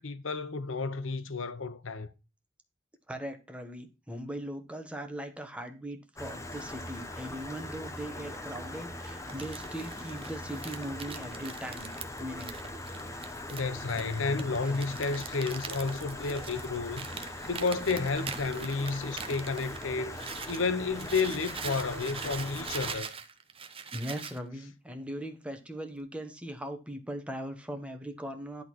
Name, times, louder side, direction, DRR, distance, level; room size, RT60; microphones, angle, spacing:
voice 1, 0.0-2.1 13.5-20.2 20.5-23.2, left 4 dB, 90° left, 0.9 m, -31 dB
voice 2, 3.1-11.9 12.2-12.5 23.9-28.6, right 1 dB, 5° right, 1.3 m, -39 dB
Stream, 6.2-23.0, left 1 dB, 15° left, 1.0 m, -41 dB
Crumpling crinkling, 9.0-20.6 20.9-24.4, right 6 dB, 30° right, 0.9 m, -42 dB
11.0 x 4.0 x 6.2 m
head